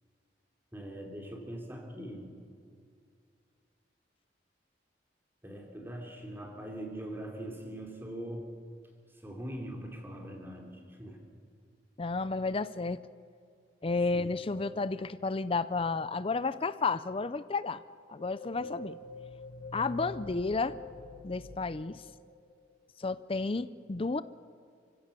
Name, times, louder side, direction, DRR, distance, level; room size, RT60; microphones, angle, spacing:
voice 1, 0.7-2.4 5.4-8.5 9.2-11.2 14.1-14.3, right 1 dB, 10° right, 2 dB, 3.2 m, -42 dB
voice 2, 12.0-13.0 13.8-17.8 18.1-19.0 19.7-20.8 21.2-22.0 23.0-24.2, left 3 dB, 30° left, 15 dB, 0.5 m, -32 dB
sound 1, 18.1-22.7, left 2 dB, 85° left, 1.5 m, -46 dB
29.5 x 16.0 x 6.8 m, 2.3 s
head